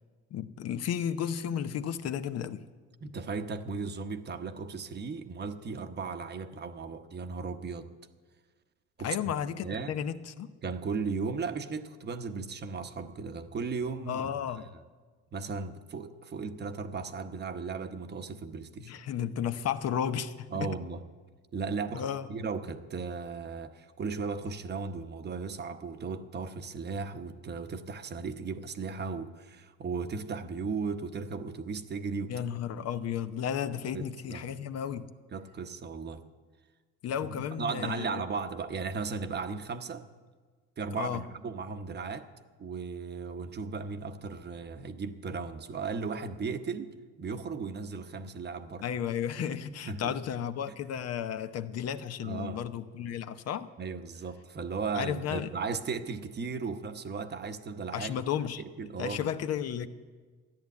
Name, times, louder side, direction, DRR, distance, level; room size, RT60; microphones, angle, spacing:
voice 1, 0.3-2.6 9.0-10.5 14.0-14.7 18.9-20.7 21.9-22.3 32.3-35.1 37.0-38.2 40.9-41.2 48.8-53.7 54.9-55.5 57.9-58.6 59.0-59.9, left 9 dB, 55° left, 0.8 m, -33 dB
voice 2, 3.0-7.9 9.0-9.3 9.6-9.9 10.6-14.3 15.3-18.9 20.5-21.0 21.5-32.3 33.9-34.4 35.3-36.2 37.3-40.1 40.8-42.3 42.6-48.8 49.8-50.2 52.2-52.6 53.8-58.1 58.6-59.3, right 5 dB, 35° right, 1.0 m, -36 dB
13.5 x 10.5 x 8.4 m
cardioid pair, 100°, 31 cm